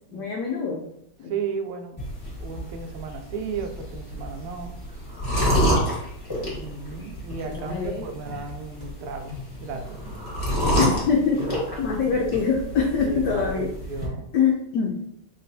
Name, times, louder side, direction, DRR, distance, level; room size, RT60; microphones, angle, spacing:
voice 1, 0.1-0.9 1.2-1.3 7.4-8.1 10.8-11.5 11.8-13.7 14.3-15.1, left 5 dB, 85° left, 1 dB, 0.9 m, -24 dB
voice 2, 1.2-2.0 2.4-4.7 6.6-10.0 13.1-14.3, right 5 dB, 85° right, 4 dB, 1.5 m, -34 dB
sound 1, 2.0-14.1, equal, 15° left, 0.7 m, -29 dB
sound 2, 7.5-8.9 9.3-12.4, left 3 dB, 40° right, 1.3 m, -42 dB
4.1 x 3.0 x 2.7 m, 0.73 s
omnidirectional pair, 2.4 m